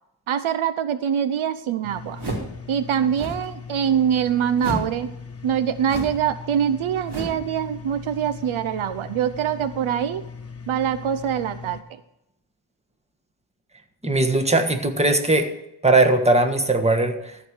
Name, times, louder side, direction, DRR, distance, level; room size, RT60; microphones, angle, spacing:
voice 1, 0.3-2.2 2.7-5.1 5.4-10.2 10.7-12.0, right 9 dB, 75° right, 13 dB, 0.7 m, -24 dB
sound 1, 1.8-11.8, left 5 dB, 30° left, 1.2 m, -39 dB
sound 2, 2.2-2.6 3.1-3.5 4.6-5.0 5.8-6.3 7.1-7.5, right 1 dB, 50° right, 2.9 m, -30 dB
voice 2, 14.0-15.5 15.8-17.5, right 2 dB, 15° right, 6 dB, 1.5 m, -19 dB
14.0 x 4.9 x 7.1 m, 0.82 s
cardioid pair, 70°, 50 cm